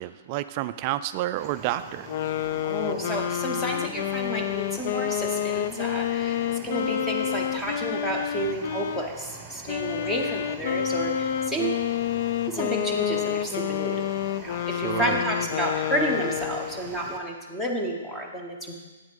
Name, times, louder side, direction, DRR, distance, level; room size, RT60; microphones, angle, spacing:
voice 1, 0.0-2.1 14.7-15.2, right 14 dB, 40° right, 12 dB, 0.3 m, -30 dB
sound 1, 1.4-17.2, right 5 dB, 20° right, 1.0 m, -44 dB
sound 2, 2.1-9.1 9.7-16.8, left 11 dB, 55° left, 0.3 m, -29 dB
voice 2, 2.6-11.8 12.5-14.0 14.4-18.7, right 1 dB, 5° left, 0 dB, 1.1 m, -30 dB
8.7 x 6.0 x 5.4 m, 1.2 s
hypercardioid pair, 140°, 0 cm